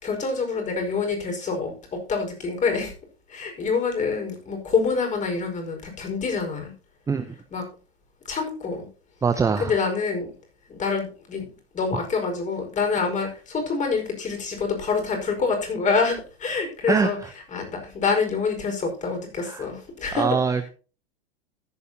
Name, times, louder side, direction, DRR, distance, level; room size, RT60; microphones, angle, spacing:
voice 1, 0.0-2.9 3.3-6.7 7.5-7.6 8.2-8.9 9.6-10.3 10.7-11.4 11.7-17.2 17.5-20.6, left 4 dB, 25° left, 3 dB, 5.0 m, -26 dB
voice 2, 9.2-9.7 16.9-17.1 19.5-19.6 20.1-20.7, right 5 dB, 10° right, 11 dB, 0.7 m, -23 dB
14.5 x 11.0 x 2.8 m, 0.36 s
figure-of-eight pair, 90°, 31 cm